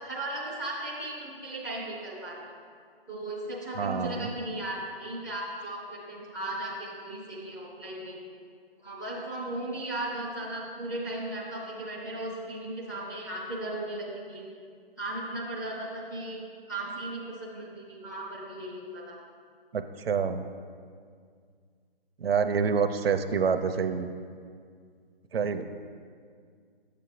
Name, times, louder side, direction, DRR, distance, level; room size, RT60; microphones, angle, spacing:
voice 1, 0.0-2.5 3.1-8.2 8.8-14.5 15.0-16.4 16.7-19.2, right 1 dB, 20° left, -6 dB, 0.6 m, -36 dB
voice 2, 3.8-4.3 19.7-20.5 22.2-24.1 25.3-25.7, right 6 dB, 75° right, 8 dB, 0.6 m, -27 dB
7.8 x 6.8 x 3.2 m, 2.1 s
hypercardioid pair, 175°, 30 cm